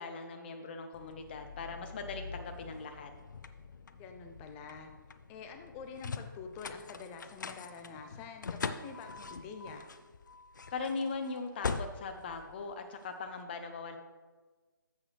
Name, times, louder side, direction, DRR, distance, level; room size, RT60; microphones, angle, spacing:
voice 1, 0.0-3.1 10.7-14.0, left 4 dB, 30° left, 6 dB, 0.8 m, -40 dB
sound 1, 0.9-13.3, left 5 dB, 60° left, 0.6 m, -43 dB
voice 2, 3.9-4.9 5.3-9.9, left 5 dB, 10° left, 5 dB, 0.4 m, -47 dB
14.5 x 6.1 x 3.3 m, 1.3 s
figure-of-eight pair, 160°, 11 cm